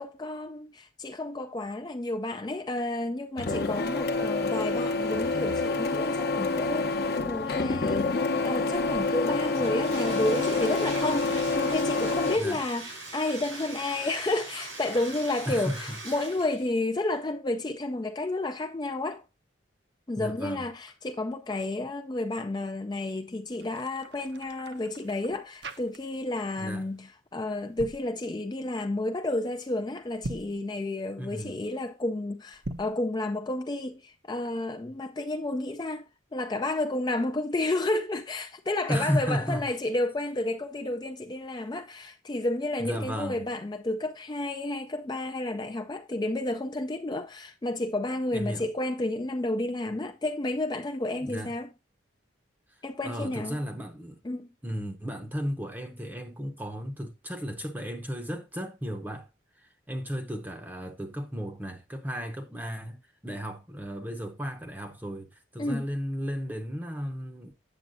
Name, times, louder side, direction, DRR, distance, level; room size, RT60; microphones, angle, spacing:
voice 1, 0.0-19.2 20.1-36.0 36.3-51.7 52.8-53.6 54.2-54.5 65.6-65.9, left 2 dB, 20° left, 0.4 m, -31 dB
Printer, 3.4-12.4, left 3 dB, 50° left, 0.8 m, -27 dB
Bathtub (filling or washing), 9.5-16.7, right 2 dB, 90° right, 4.6 m, -41 dB
voice 2, 15.5-16.0 20.2-20.7 26.6-26.9 31.2-31.6 38.9-39.7 42.8-43.4 48.3-48.7 51.2-51.5 53.0-54.2 54.6-59.3 59.6-67.5, equal, 10° right, 0.7 m, -34 dB
sound 1, 23.5-26.4 26.7-27.0 27.6-28.1 30.1-30.6 32.5-33.0, right 2 dB, 55° right, 0.8 m, -41 dB
8.9 x 7.0 x 2.6 m
head